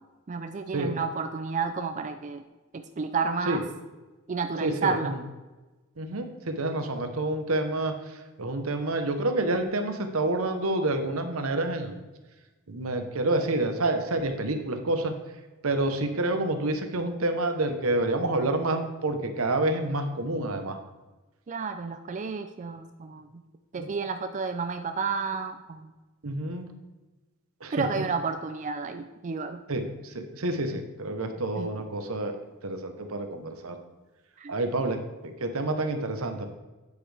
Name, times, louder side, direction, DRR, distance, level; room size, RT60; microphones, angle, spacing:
voice 1, 0.3-2.4 2.7-3.6 4.3-5.2 21.5-23.3 23.7-25.9 27.7-29.6 31.6-31.7 34.4-34.5, right 5 dB, 35° right, 7 dB, 0.4 m, -31 dB
voice 2, 4.6-5.2 6.0-7.9 8.4-12.0 12.7-15.1 15.6-20.8 23.8-23.9 26.2-26.7 27.6-27.9 29.7-32.3 32.6-33.8 34.5-36.5, right 2 dB, 80° right, 6 dB, 1.0 m, -28 dB
8.6 x 8.1 x 3.4 m, 1.2 s
head